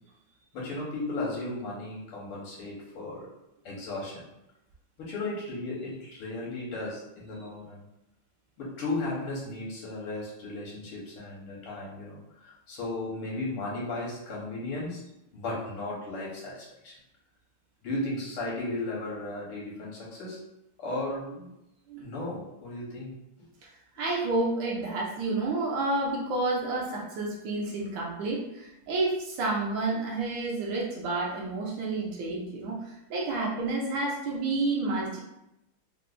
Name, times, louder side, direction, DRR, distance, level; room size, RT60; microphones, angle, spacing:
voice 1, 0.5-3.3 3.7-4.2 5.0-7.8 8.6-12.2 12.4-15.0 15.3-16.9 17.8-20.4 20.8-21.5 22.0-23.5, left 2 dB, 75° left, -5 dB, 1.9 m, -35 dB
voice 2, 24.0-35.2, right 2 dB, 70° right, -3 dB, 1.3 m, -30 dB
4.5 x 2.1 x 2.4 m, 0.86 s
omnidirectional pair, 2.3 m